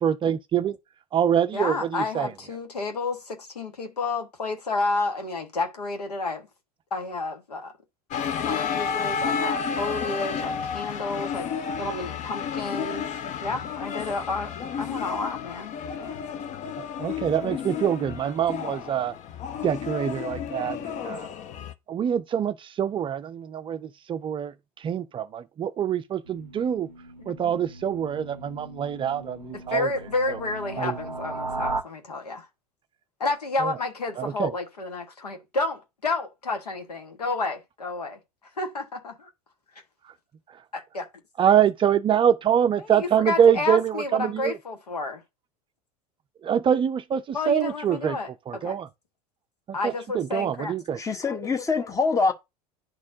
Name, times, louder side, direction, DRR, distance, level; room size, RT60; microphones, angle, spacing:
voice 1, 0.0-0.8 1.1-2.3 17.0-19.1 19.6-21.3 21.9-26.9 27.3-29.9 30.3-30.4 30.8-30.9 33.6-33.8 34.2-34.5 40.5-40.6 41.4-44.6 46.4-48.2 48.5-48.9 49.7-51.0, right 9 dB, 25° right, 0.5 m, -25 dB
voice 2, 1.5-6.5 6.9-7.7 8.4-11.5 11.8-16.1 27.2-27.3 29.7-32.5 33.2-38.2 38.6-39.3 40.7-41.1 42.9-45.2 47.3-48.7 49.7-50.7, left 3 dB, 75° left, 1.4 m, -30 dB
sound 1, 8.1-21.7, left 7 dB, 35° left, 0.8 m, -31 dB
sound 2, 26.3-31.8, right 3 dB, 90° right, 0.5 m, -37 dB
voice 3, 50.9-52.3, left 4 dB, 15° left, 1.1 m, -24 dB
10.5 x 4.2 x 2.7 m
figure-of-eight pair, 75°, 20 cm